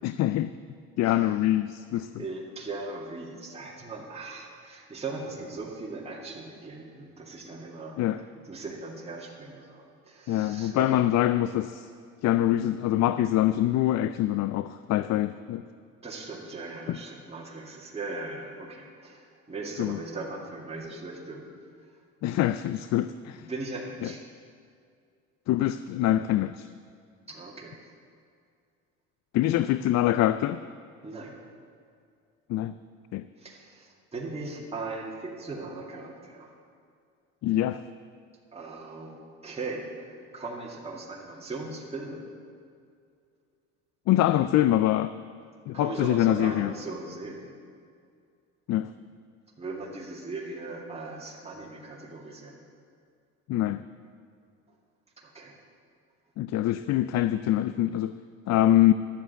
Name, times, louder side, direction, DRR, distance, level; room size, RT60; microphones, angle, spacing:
voice 1, 0.0-0.5 1.0-2.1 8.0-8.2 10.3-11.9 12.2-15.6 16.9-17.0 19.8-20.0 22.2-23.5 24.0-24.1 25.5-26.7 29.3-30.6 32.5-32.7 33.1-33.3 37.4-37.8 44.1-45.1 45.7-46.7 48.7-48.9 53.5-53.8 56.4-58.1 58.5-58.9, left 13 dB, 55° left, 14 dB, 0.4 m, -24 dB
voice 2, 1.0-1.4 2.1-11.0 16.0-21.5 23.4-24.2 27.3-27.8 31.0-31.4 33.4-36.5 38.5-42.3 45.7-47.5 49.6-52.6 54.7-54.8 55.2-55.6, right 3 dB, 20° right, -2 dB, 2.2 m, -39 dB
11.5 x 7.4 x 8.1 m, 2.3 s
supercardioid pair, 85°, 32 cm